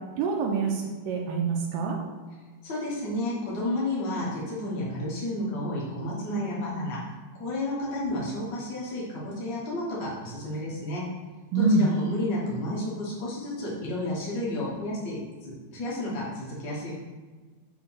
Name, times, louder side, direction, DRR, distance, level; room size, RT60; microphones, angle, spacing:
voice 1, 0.2-2.0 11.5-11.8, right 4 dB, 75° right, 1 dB, 2.2 m, -25 dB
voice 2, 2.6-7.0 7.4-11.0 11.5-17.0, left 1 dB, 75° left, -6 dB, 1.0 m, -31 dB
7.2 x 3.0 x 5.6 m, 1.4 s
omnidirectional pair, 4.3 m